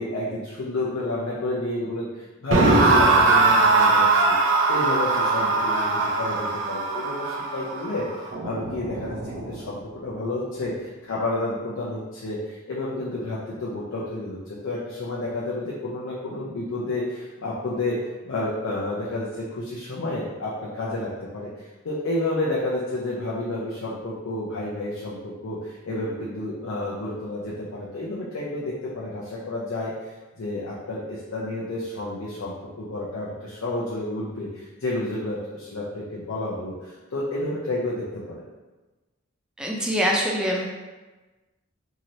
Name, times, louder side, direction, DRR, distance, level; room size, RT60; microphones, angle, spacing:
voice 1, 0.0-4.4 4.7-18.0 18.2-38.4, left 2 dB, 80° left, -5 dB, 0.5 m, -30 dB
sound 1, 2.5-9.6, right 3 dB, 65° right, 0.5 m, -21 dB
voice 2, 39.6-40.7, equal, 5° right, -2 dB, 0.3 m, -24 dB
3.0 x 2.8 x 2.6 m, 1.2 s
head